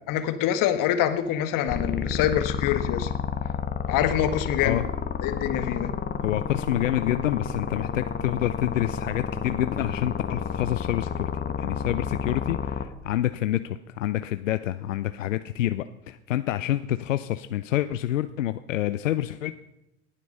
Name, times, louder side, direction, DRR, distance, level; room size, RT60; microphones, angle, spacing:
voice 1, 0.1-3.1 3.9-4.8 5.2-5.9, left 10 dB, 55° left, 9 dB, 1.5 m, -25 dB
sound 1, 1.7-12.8, left 6 dB, 25° left, 1.4 m, -30 dB
voice 2, 6.2-11.3 11.6-19.5, left 13 dB, 90° left, 12 dB, 0.5 m, -27 dB
18.5 x 8.4 x 5.4 m, 0.92 s
hypercardioid pair, 70°, 37 cm